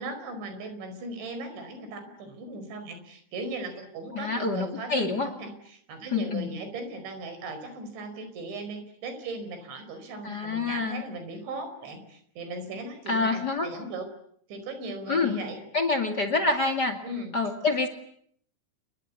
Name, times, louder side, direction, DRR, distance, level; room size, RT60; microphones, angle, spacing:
voice 1, 0.0-14.1 14.5-15.6 17.0-17.4, right 2 dB, 75° right, 8 dB, 7.2 m, -38 dB
voice 2, 4.1-5.3 6.1-6.5 10.2-11.0 13.0-13.7 15.1-15.4 15.7-17.0 17.3-17.9, left 3 dB, 40° left, 9 dB, 1.6 m, -26 dB
29.5 x 22.5 x 8.3 m, 0.67 s
omnidirectional pair, 5.3 m